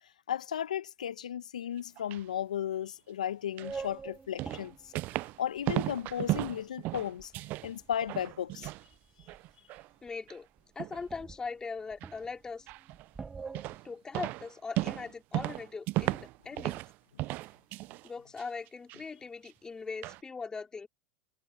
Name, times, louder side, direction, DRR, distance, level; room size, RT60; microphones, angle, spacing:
voice 1, 0.3-4.7 5.4-7.3 7.6-8.7, left 10 dB, 85° left, 1.1 m, -35 dB
sound 1, 1.8-2.2 3.6-3.8 4.4-5.4 5.6-7.7 8.0-8.8 9.2-9.9 10.3-10.4 10.8-11.1 12.0-12.1 12.7-13.1 13.5-13.9 14.1-16.9 17.2-18.1 18.4-19.0 19.4-19.5 20.0-20.2, right 19 dB, 50° right, 0.4 m, -35 dB
sound 2, 3.6-6.5 7.0-8.3 8.9-9.5 9.8-9.9 10.1-10.2 10.6-10.7 11.0-13.8, right 5 dB, 20° right, 1.4 m, -45 dB
voice 2, 10.0-10.5 10.7-12.7 13.8-16.8 18.0-20.9, left 4 dB, 20° left, 2.9 m, -40 dB
hypercardioid pair, 90°, 4 cm